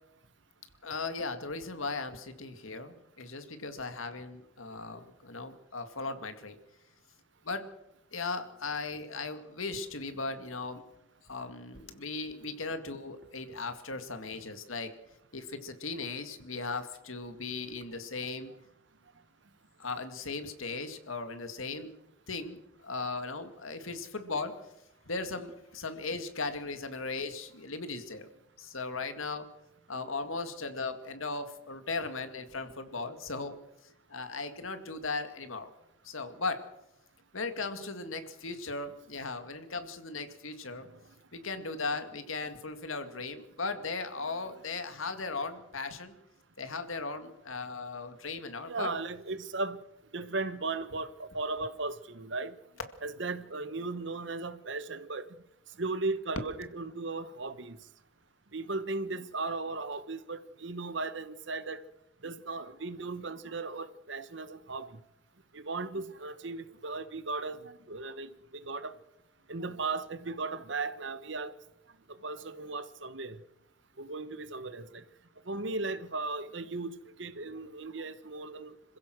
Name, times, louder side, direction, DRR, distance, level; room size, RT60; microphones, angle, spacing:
voice 1, 0.8-6.6 7.4-7.7 8.1-10.8 11.3-14.9 15.3-18.5 19.8-21.9 22.3-24.6 25.1-28.3 28.6-29.5 29.9-33.6 34.1-35.7 36.0-36.6 37.3-40.9 41.3-46.1 46.6-48.9, left 3 dB, 90° left, 2.1 m, -37 dB
voice 2, 48.6-49.8 50.1-52.6 53.0-55.3 55.8-57.8 58.5-61.8 62.2-65.0 65.5-68.9 69.5-71.5 72.2-73.4 74.0-75.0 75.5-78.7, right 3 dB, 65° right, 1.2 m, -36 dB
26.5 x 15.5 x 6.3 m
head